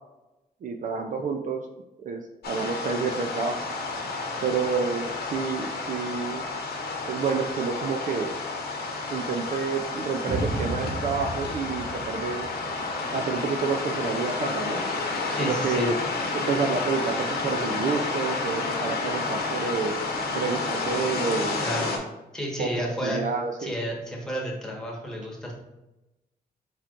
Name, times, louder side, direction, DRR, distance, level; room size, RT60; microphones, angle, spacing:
voice 1, 0.6-1.7 2.0-3.6 4.4-6.4 7.1-8.3 9.1-12.5 13.1-14.8 15.4-15.9 16.3-19.9 20.3-21.6 22.6-23.7, right 5 dB, 50° right, 4 dB, 0.4 m, -29 dB
sound 1, 2.4-22.0, left 3 dB, 80° left, 1.0 m, -30 dB
sound 2, 10.3-13.5, right 2 dB, 20° right, 1.2 m, -33 dB
voice 2, 15.3-15.9 21.6-21.9 22.3-23.2 23.6-25.5, equal, 5° left, -2 dB, 1.4 m, -31 dB
4.8 x 4.4 x 2.5 m, 0.98 s
cardioid pair, 105°, 16 cm